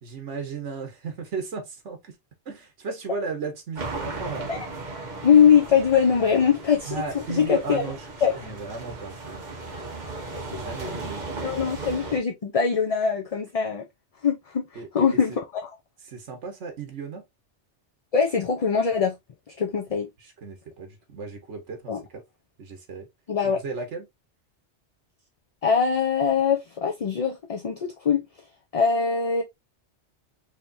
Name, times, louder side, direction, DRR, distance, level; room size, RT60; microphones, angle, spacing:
voice 1, 0.0-2.2 2.4-4.5 6.9-9.4 10.3-11.3 14.7-15.4 16.1-17.2 20.2-22.2 22.6-23.1 23.4-24.1, right 4 dB, 85° right, 1.4 m, -35 dB
sound 1, 3.7-12.2, right 3 dB, 40° right, 1.3 m, -36 dB
voice 2, 4.9-7.0 7.3-7.8 8.2-8.4 11.4-13.8 14.2-14.6 14.9-15.3 18.1-19.1 19.6-20.1 21.9-22.0 23.3-23.6 25.6-28.2 28.7-29.4, left 7 dB, 40° left, 0.5 m, -22 dB
4.9 x 2.9 x 2.5 m
omnidirectional pair, 1.2 m